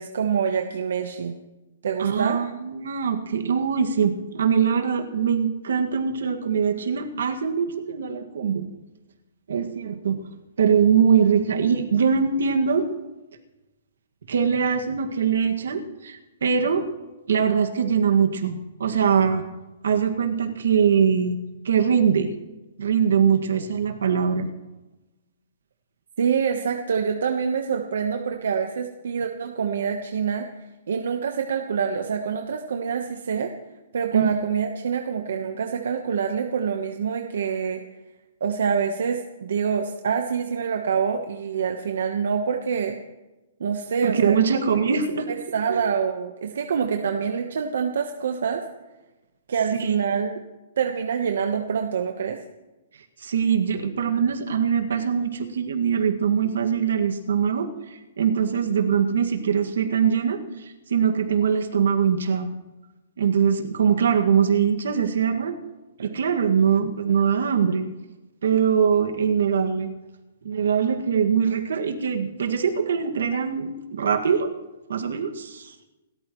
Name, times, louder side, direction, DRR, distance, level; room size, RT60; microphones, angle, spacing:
voice 1, 0.0-1.4 1.8-2.4 26.2-30.5 30.9-33.5 33.9-37.8 38.4-43.0 43.6-44.4 44.9-48.6 49.5-50.3 50.8-52.4 66.0-66.1, right 6 dB, 65° right, 5 dB, 1.1 m, -26 dB
voice 2, 2.0-8.7 9.5-10.2 10.6-12.9 14.3-16.8 17.3-19.4 19.8-21.4 21.6-22.3 22.8-24.5 34.1-34.3 44.0-45.3 45.7-45.8 49.8-50.0 53.2-62.5 63.2-65.6 66.0-67.8 68.4-69.9 70.4-74.5 74.9-75.7, right 7 dB, 80° right, 5 dB, 1.9 m, -22 dB
29.0 x 13.5 x 3.1 m, 1.1 s
hypercardioid pair, 180°, 0 cm